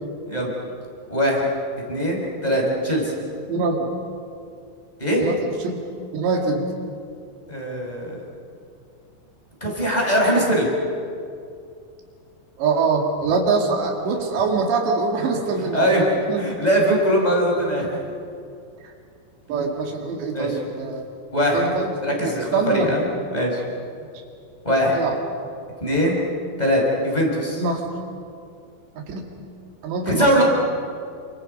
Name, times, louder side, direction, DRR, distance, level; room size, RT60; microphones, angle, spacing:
voice 1, 1.1-1.4 1.9-3.1 5.0-5.3 7.5-8.2 9.6-10.7 15.7-16.0 16.3-17.9 20.3-20.6 21.3-21.6 22.0-23.0 23.3-23.6 24.6-25.0 25.8-26.2 26.6-27.6 30.1-30.4, equal, 10° left, -1 dB, 5.3 m, -21 dB
voice 2, 3.5-3.9 5.2-5.8 6.1-6.7 12.6-15.9 16.3-16.5 19.5-21.1 21.5-22.9 24.9-25.2 27.5-27.8 29.1-29.3 29.8-30.4, right 4 dB, 75° right, 2 dB, 4.6 m, -24 dB
29.5 x 27.0 x 5.5 m, 2.4 s
omnidirectional pair, 5.0 m